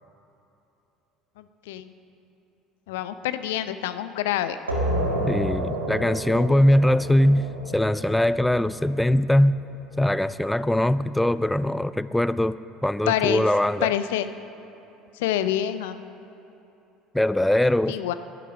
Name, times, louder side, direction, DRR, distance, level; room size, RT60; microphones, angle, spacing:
voice 1, 1.4-1.9 2.9-4.6 13.1-13.5 13.8-14.3 15.2-16.0 17.9-18.1, left 11 dB, 70° left, 12 dB, 0.5 m, -26 dB
sound 1, 4.7-10.0, right 1 dB, 90° right, 1.8 m, -30 dB
voice 2, 5.3-9.6 10.0-13.9 17.1-18.0, left 1 dB, 5° left, 16 dB, 0.3 m, -21 dB
11.5 x 11.0 x 6.3 m, 3.0 s
figure-of-eight pair, 65°, 0 cm